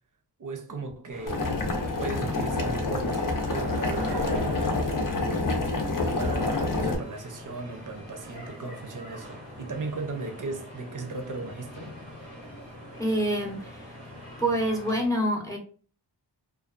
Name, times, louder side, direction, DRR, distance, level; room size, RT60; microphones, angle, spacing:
voice 1, 0.4-1.4 2.0-5.0 6.2-11.9, right 3 dB, 50° right, 0.6 m, -36 dB
sound 1, 1.1-15.1, left 1 dB, 90° left, 0.9 m, -44 dB
Boiling, 1.3-7.0, left 2 dB, 50° left, 0.6 m, -27 dB
sound 2, 3.2-6.3, right 2 dB, 90° right, 0.8 m, -41 dB
voice 2, 12.9-13.9 14.4-15.6, right 1 dB, 10° left, 0.6 m, -26 dB
2.5 x 2.2 x 2.3 m
wide cardioid pair, 60°, 41 cm